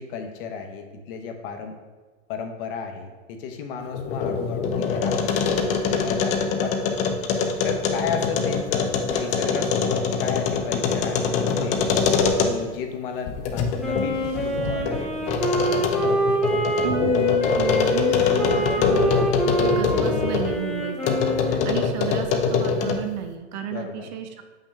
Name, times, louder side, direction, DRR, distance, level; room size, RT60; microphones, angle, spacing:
voice 1, 0.0-1.8 2.3-7.2 7.6-11.9 12.4-15.4 21.5-21.8 23.7-24.1, left 6 dB, 50° left, 5 dB, 1.0 m, -34 dB
sound 1, 3.8-12.8 13.3-20.6 21.0-23.1, left 5 dB, 20° left, 0.4 m, -24 dB
Wind instrument woodwind instrument, 13.8-21.9, left 1 dB, ahead, 0.7 m, -25 dB
voice 2, 16.8-21.2 21.4-24.4, right 9 dB, 40° right, 8 dB, 0.5 m, -32 dB
6.9 x 5.6 x 3.5 m, 1.3 s
hypercardioid pair, 140°, 37 cm